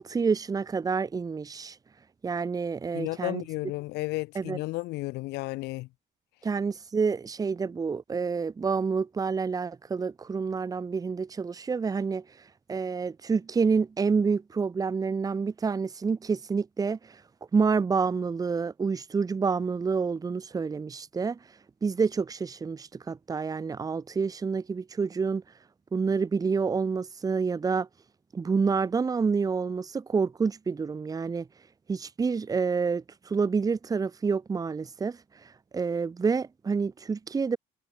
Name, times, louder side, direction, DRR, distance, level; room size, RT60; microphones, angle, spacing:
voice 1, 0.0-1.8 2.2-3.4 4.3-4.6 6.4-12.2 12.7-17.2 17.5-21.4 21.8-25.4 25.9-27.9 28.3-31.5 31.9-35.2 35.7-37.6, right 5 dB, 20° right, 0.7 m, -28 dB
voice 2, 2.9-5.9, left 20 dB, 90° left, 1.1 m, -33 dB
cardioid pair, 110°, 17 cm